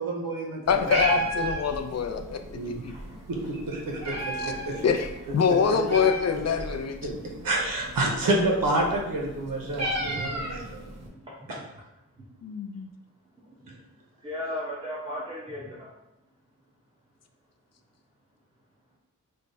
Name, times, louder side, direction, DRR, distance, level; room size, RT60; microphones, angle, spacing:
voice 1, 0.0-0.9 2.5-2.8 3.3-4.8 7.0-7.1 7.4-10.8, right 2 dB, 85° right, 0 dB, 0.8 m, -28 dB
Meow, 0.6-11.1, right 1 dB, 50° right, 0.9 m, -35 dB
voice 2, 0.7-2.4 2.8-2.9 4.4-4.5 4.8-7.1 12.4-12.9, left 6 dB, 50° left, 6 dB, 0.4 m, -25 dB
voice 3, 2.8-3.1 4.4-4.5 6.8-7.1 10.0-10.4 11.3-11.6 14.2-15.9, left 1 dB, 15° right, -6 dB, 1.1 m, -37 dB
3.3 x 2.1 x 4.0 m, 0.93 s
cardioid pair, 55°, 33 cm